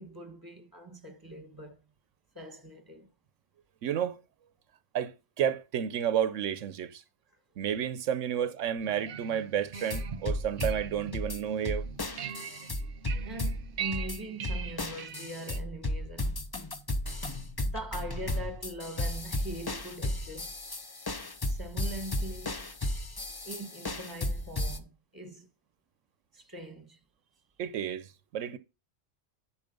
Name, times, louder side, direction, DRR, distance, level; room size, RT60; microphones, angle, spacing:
voice 1, 0.0-1.8 2.3-3.1 13.2-16.3 17.6-20.5 21.5-22.7 23.4-25.5 26.3-27.0, right 1 dB, 15° right, 1.5 m, -42 dB
voice 2, 3.8-4.2 4.9-7.0 7.6-11.8 27.6-28.1 28.3-28.6, right 9 dB, 85° right, 1.0 m, -31 dB
sound 1, 8.8-15.6, right 8 dB, 55° right, 0.7 m, -42 dB
sound 2, 9.7-24.8, left 1 dB, 25° left, 0.6 m, -34 dB
10.5 x 4.4 x 5.2 m
omnidirectional pair, 1.3 m